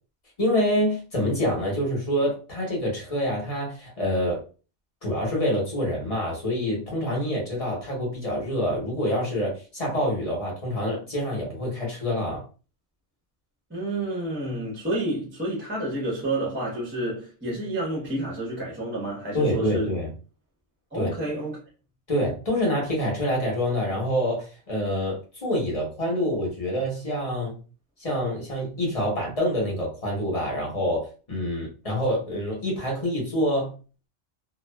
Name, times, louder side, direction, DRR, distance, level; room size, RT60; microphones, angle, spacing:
voice 1, 0.4-4.4 5.0-12.4 19.3-20.1 20.9-21.1 22.1-27.6 28.0-33.7, equal, 30° left, 1.0 m, -26 dB
voice 2, 13.7-19.9 20.9-21.6, right 1 dB, 10° right, 0.8 m, -29 dB
2.4 x 2.3 x 2.2 m
omnidirectional pair, 1.2 m